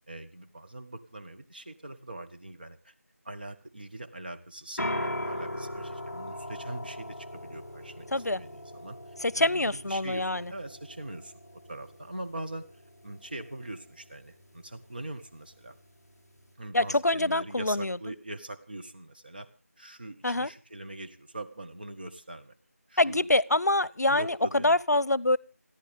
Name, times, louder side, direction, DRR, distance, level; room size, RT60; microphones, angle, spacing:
voice 1, 0.1-2.9 3.2-9.0 9.4-12.7 13.0-15.8 16.6-19.5 19.8-22.5 22.9-23.6 24.1-24.8, right 1 dB, 35° right, 6 dB, 1.3 m, -42 dB
sound 1, 4.8-16.5, left 1 dB, 10° left, 3.3 m, -40 dB
voice 2, 8.1-8.4 9.2-10.5 16.7-18.0 20.2-20.5 23.0-24.3 24.6-25.4, left 2 dB, 90° left, 24 dB, 0.7 m, -25 dB
29.0 x 10.5 x 3.6 m, 0.34 s
figure-of-eight pair, 175°, 9 cm